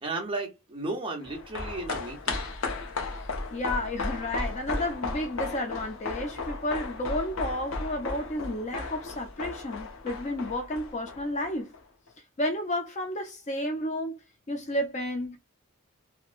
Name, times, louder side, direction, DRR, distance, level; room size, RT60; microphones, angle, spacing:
voice 1, 0.0-2.4, right 2 dB, 25° right, 0.8 m, -34 dB
sound 1, 1.2-11.8 12.1-12.2, left 3 dB, 70° left, 0.7 m, -35 dB
voice 2, 3.1-11.7 12.4-14.2 14.5-15.4, left 1 dB, 30° left, 0.4 m, -32 dB
2.9 x 2.1 x 2.4 m
head